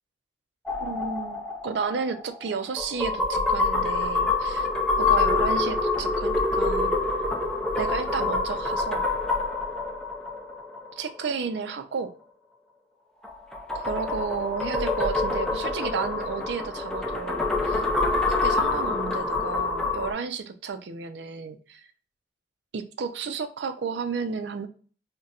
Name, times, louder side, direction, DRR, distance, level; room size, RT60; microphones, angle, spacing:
sound 1, 0.7-11.3 13.2-20.1, left 3 dB, 5° left, 0.4 m, -26 dB
voice 1, 0.8-4.7 5.0-6.9 7.8-9.1 11.0-12.2 13.7-21.8 22.7-24.7, right 5 dB, 75° right, 9 dB, 0.4 m, -32 dB
4.0 x 2.2 x 2.3 m, 0.40 s
head